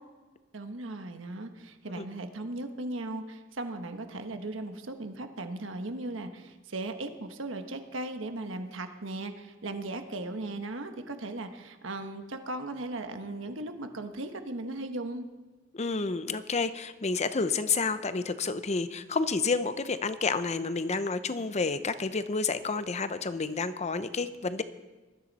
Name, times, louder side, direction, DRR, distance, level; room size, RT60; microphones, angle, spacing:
voice 1, 0.5-15.3, right 2 dB, 85° right, 6 dB, 1.3 m, -37 dB
voice 2, 15.7-24.6, left 4 dB, 35° left, 12 dB, 0.7 m, -30 dB
20.0 x 13.5 x 4.2 m, 1.3 s
head